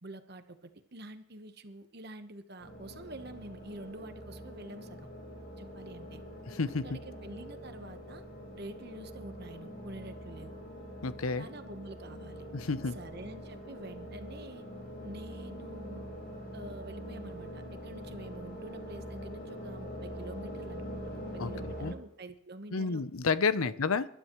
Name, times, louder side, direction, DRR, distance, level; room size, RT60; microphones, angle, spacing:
voice 1, 0.0-5.1 5.6-6.2 6.8-8.2 8.5-10.6 11.4-12.5 12.9-14.7 15.0-16.1 16.5-23.0 23.6-23.7, right 1 dB, 50° right, 9 dB, 1.1 m, -47 dB
sound 1, 2.6-21.9, equal, 45° left, 4.9 m, -44 dB
voice 2, 6.5-6.9 11.0-11.5 12.5-13.0 21.4-21.5 21.8-21.9 22.7-24.1, left 4 dB, 85° left, 15 dB, 0.7 m, -30 dB
25.5 x 12.5 x 3.1 m, 0.74 s
head